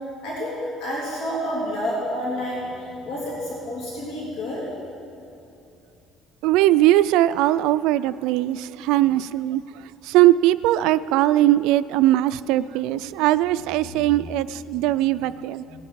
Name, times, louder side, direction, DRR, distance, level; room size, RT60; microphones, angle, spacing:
voice 1, 0.2-4.7 12.7-12.9 13.8-14.2 14.9-15.2 15.7-15.8, equal, 70° left, -6 dB, 3.3 m, -30 dB
voice 2, 6.4-9.6 10.1-15.6, right 14 dB, 80° right, 14 dB, 0.3 m, -20 dB
18.0 x 9.5 x 4.7 m, 2.7 s
cardioid pair, 155°, 0 cm